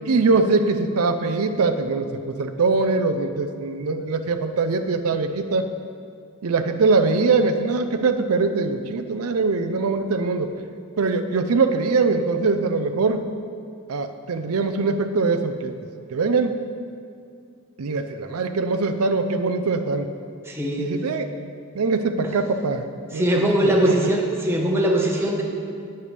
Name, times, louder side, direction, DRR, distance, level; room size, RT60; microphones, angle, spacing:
voice 1, 0.1-5.7 6.4-10.5 11.0-13.3 13.9-15.8 16.1-16.6 17.8-20.1 20.8-21.3 21.7-24.1, right 4 dB, 75° right, 8 dB, 0.5 m, -22 dB
voice 2, 20.5-20.9 23.1-25.4, right 1 dB, 10° right, -1 dB, 1.1 m, -21 dB
19.0 x 6.8 x 3.4 m, 2.3 s
head